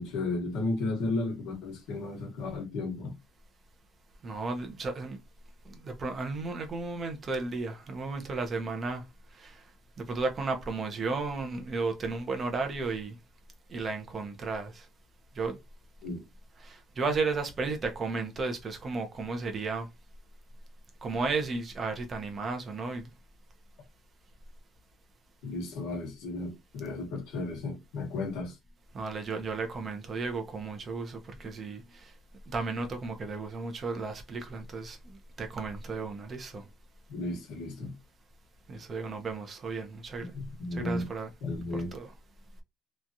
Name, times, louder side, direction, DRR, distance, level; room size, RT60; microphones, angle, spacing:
voice 1, 0.0-3.1 16.0-16.2 25.4-28.5 37.1-37.9 40.3-41.1 41.4-41.9, left 2 dB, 90° left, 1.1 m, -34 dB
voice 2, 4.2-5.2 5.7-9.0 9.3-9.6 10.0-13.1 13.7-14.9 15.4-15.6 16.6-19.9 21.0-23.1 28.9-32.1 32.5-35.0 35.4-36.6 38.7-40.3 40.7-41.3 41.9-42.1, right 3 dB, 30° right, 0.8 m, -34 dB
3.1 x 2.4 x 2.7 m
cardioid pair, 150°, 0 cm